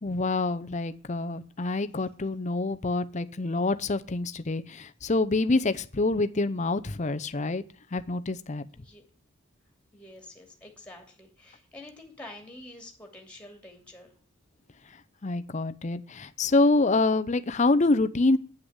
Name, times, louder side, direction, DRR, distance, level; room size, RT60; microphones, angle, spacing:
voice 1, 0.0-7.6 7.9-8.7 15.2-18.4, left 2 dB, 35° left, 11 dB, 0.6 m, -26 dB
voice 2, 9.9-14.1, left 1 dB, 5° left, 2 dB, 2.6 m, -47 dB
9.7 x 6.2 x 8.0 m, 0.41 s
head